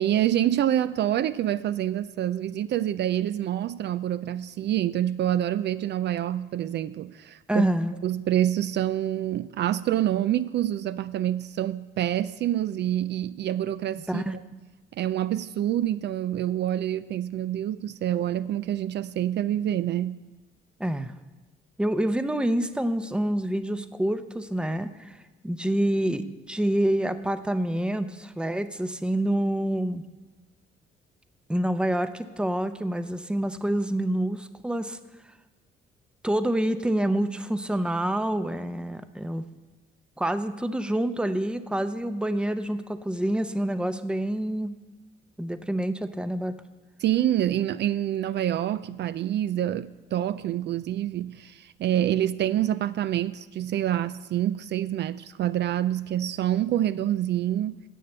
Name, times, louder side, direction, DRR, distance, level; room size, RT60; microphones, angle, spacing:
voice 1, 0.0-7.6 8.0-14.4 14.9-20.2 47.0-57.8, right 12 dB, 60° right, 0.4 m, -27 dB
voice 2, 7.5-8.0 14.1-14.4 20.8-21.1 21.8-25.2 25.4-30.0 31.5-35.0 36.2-39.4 40.2-44.7 45.4-46.6, right 1 dB, 5° right, 0.6 m, -27 dB
10.0 x 6.8 x 7.9 m
cardioid pair, 90°, 20 cm